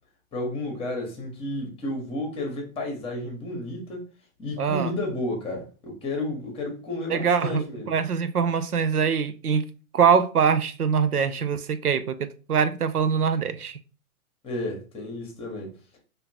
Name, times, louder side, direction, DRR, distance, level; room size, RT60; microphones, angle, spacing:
voice 1, 0.3-4.0 4.4-7.9 14.4-15.7, left 1 dB, 15° left, 1.2 m, -32 dB
voice 2, 4.6-4.9 7.1-9.7 9.9-13.8, right 6 dB, 90° right, 0.6 m, -23 dB
5.0 x 2.8 x 2.8 m
figure-of-eight pair, 115°, 43 cm